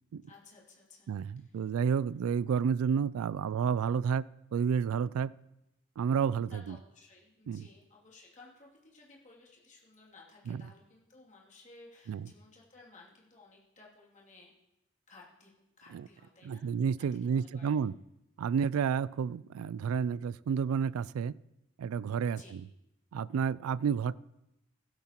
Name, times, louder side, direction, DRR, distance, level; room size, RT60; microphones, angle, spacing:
voice 1, 0.3-1.8 6.5-14.5 15.1-15.5 15.8-16.7 17.2-17.8 22.2-22.6, left 3 dB, 35° left, 2.7 m, -57 dB
voice 2, 1.1-4.2 4.5-5.3 6.0-6.8 7.5-7.7 10.5-10.6 12.1-12.2 15.9-16.0 16.4-17.9 18.4-21.3 21.8-22.4 23.1-24.2, right 7 dB, 90° right, 0.3 m, -30 dB
15.5 x 13.0 x 2.9 m
head